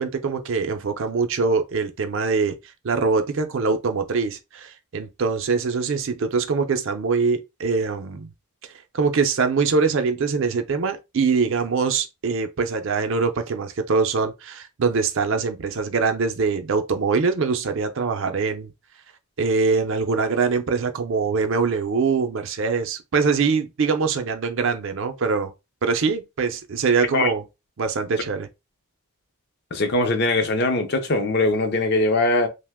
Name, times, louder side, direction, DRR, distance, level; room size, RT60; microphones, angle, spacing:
voice 1, 0.0-2.6 2.8-8.3 8.9-18.7 19.4-25.5 25.8-27.4 27.8-28.5, right 4 dB, 60° right, 0.5 m, -23 dB
voice 2, 29.7-32.5, left 2 dB, 50° left, 0.6 m, -21 dB
2.8 x 2.1 x 3.4 m
head